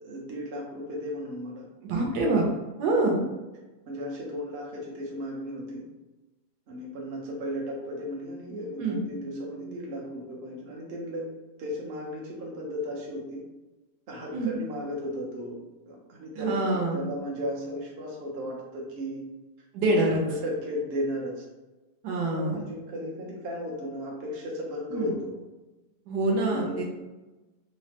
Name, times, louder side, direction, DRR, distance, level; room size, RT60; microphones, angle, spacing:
voice 1, 0.0-1.7 3.1-3.3 3.9-5.8 6.7-11.3 11.6-13.4 14.1-15.6 15.9-19.2 19.8-21.4 22.4-25.3 26.5-26.8, equal, 55° right, -3 dB, 0.7 m, -35 dB
voice 2, 1.8-2.4 2.8-3.2 8.8-9.0 14.3-14.5 16.4-17.0 19.7-20.2 22.0-22.6 24.9-25.1 26.1-26.8, right 2 dB, 75° right, -1 dB, 1.2 m, -25 dB
3.3 x 2.1 x 2.7 m, 1.1 s
omnidirectional pair, 1.8 m